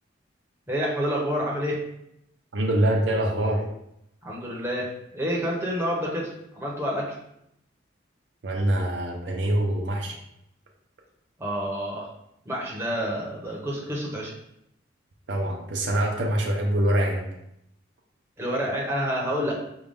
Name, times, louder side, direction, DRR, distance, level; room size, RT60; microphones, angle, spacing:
voice 1, 0.7-1.8 4.2-7.2 11.4-12.1 12.5-14.3 18.4-19.6, equal, 15° right, -4 dB, 0.7 m, -28 dB
voice 2, 2.5-3.7 8.4-10.2 15.3-17.2, right 1 dB, 65° right, 0 dB, 0.6 m, -24 dB
5.0 x 2.3 x 3.5 m, 0.79 s
head